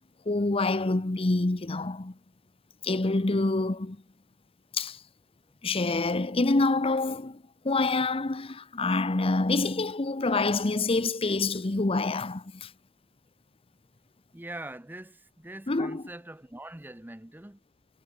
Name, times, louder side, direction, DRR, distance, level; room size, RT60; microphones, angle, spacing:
voice 1, 0.3-2.1 2.8-4.0 4.7-5.0 5.6-12.7 15.7-16.1, left 3 dB, 30° left, 0.8 m, -27 dB
voice 2, 14.3-17.6, right 1 dB, 10° right, 0.7 m, -43 dB
head